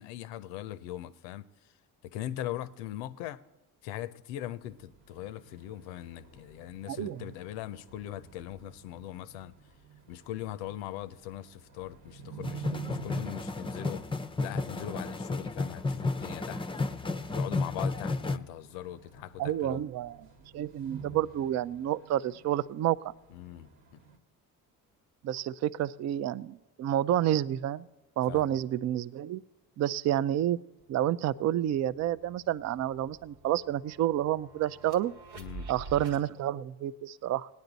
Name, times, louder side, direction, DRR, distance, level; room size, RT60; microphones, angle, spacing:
voice 1, 0.0-1.7 2.0-3.4 3.8-9.5 10.1-14.0 14.4-16.7 17.3-19.8 23.3-24.0 28.3-28.5 35.3-35.7, left 13 dB, 80° left, 0.6 m, -40 dB
sound 1, 4.4-24.2, right 5 dB, 60° right, 1.3 m, -50 dB
voice 2, 6.9-7.2 19.4-20.2 20.5-23.1 25.2-27.9 28.2-29.4 29.8-30.6 30.9-35.1 35.7-37.5, right 12 dB, 40° right, 0.4 m, -29 dB
sound 2, 12.4-18.4, left 3 dB, 10° left, 0.5 m, -33 dB
sound 3, 30.8-30.9 31.2-36.2, right 3 dB, 85° right, 1.6 m, -48 dB
18.5 x 9.5 x 4.0 m
hypercardioid pair, 55°, 44 cm